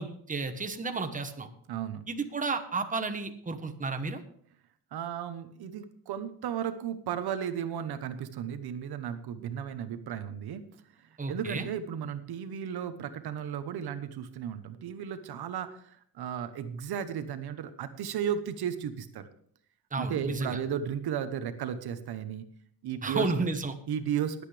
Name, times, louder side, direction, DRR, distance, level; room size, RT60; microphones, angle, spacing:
voice 1, 0.0-1.5 2.1-4.2 11.2-11.7 19.9-20.6 23.0-23.8, right 3 dB, 20° right, 7 dB, 1.2 m, -32 dB
voice 2, 1.7-2.0 4.9-10.6 11.0-19.3 20.0-22.4 22.8-23.3 23.9-24.4, right 8 dB, 85° right, 10 dB, 1.1 m, -34 dB
21.0 x 8.3 x 3.4 m, 0.62 s
cardioid pair, 130°, 37 cm